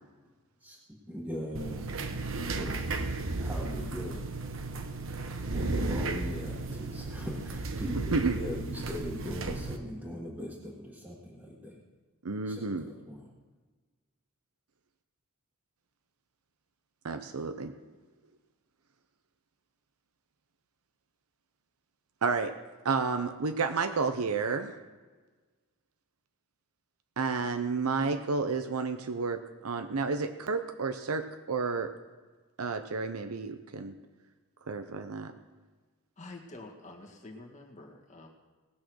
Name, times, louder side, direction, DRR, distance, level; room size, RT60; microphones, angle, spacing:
voice 1, 1.1-1.8 2.5-2.8 3.4-4.3 5.5-11.8 12.5-13.2, equal, 5° right, -6 dB, 1.6 m, -40 dB
sound 1, 1.5-9.8, right 3 dB, 65° right, 1.0 m, -34 dB
voice 2, 12.2-12.8 17.0-17.7 22.2-22.5 22.8-24.8 27.2-31.9 32.6-33.9 34.7-35.3, right 4 dB, 90° right, 8 dB, 0.7 m, -31 dB
voice 3, 36.2-38.3, left 2 dB, 35° left, 0 dB, 1.9 m, -47 dB
18.5 x 6.5 x 6.3 m, 1.4 s
head